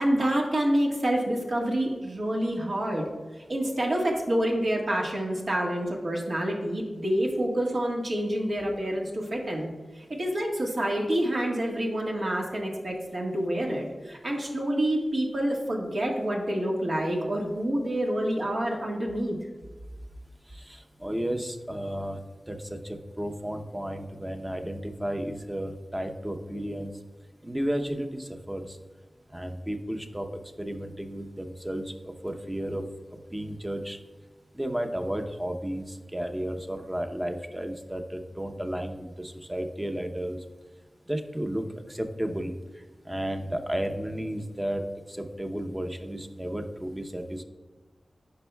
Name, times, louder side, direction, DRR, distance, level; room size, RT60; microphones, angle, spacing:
voice 1, 0.0-3.0 3.5-9.7 10.0-19.3, right 1 dB, 70° right, -1 dB, 1.5 m, -27 dB
voice 2, 20.5-22.2 22.5-26.9 27.4-28.8 29.3-30.3 30.6-32.8 33.3-34.0 34.5-40.4 41.1-42.5 43.1-44.8 45.1-47.4, equal, 15° right, 5 dB, 0.8 m, -33 dB
9.7 x 5.3 x 2.3 m, 1.3 s
cardioid pair, 50°, 0 cm